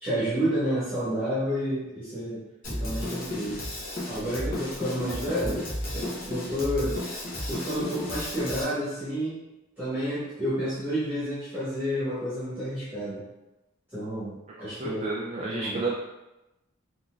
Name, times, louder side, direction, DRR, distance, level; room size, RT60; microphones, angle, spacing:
voice 1, 0.0-3.6 4.1-5.7 5.9-7.0 7.5-9.4 9.8-13.2 13.9-14.3 14.6-15.1 15.4-15.9, equal, 10° right, -13 dB, 1.4 m, -30 dB
Drum kit, 2.6-8.6, left 1 dB, 45° left, 0.9 m, -33 dB
voice 2, 14.6-15.9, right 3 dB, 30° right, -3 dB, 0.3 m, -31 dB
3.9 x 2.8 x 2.4 m, 0.96 s
head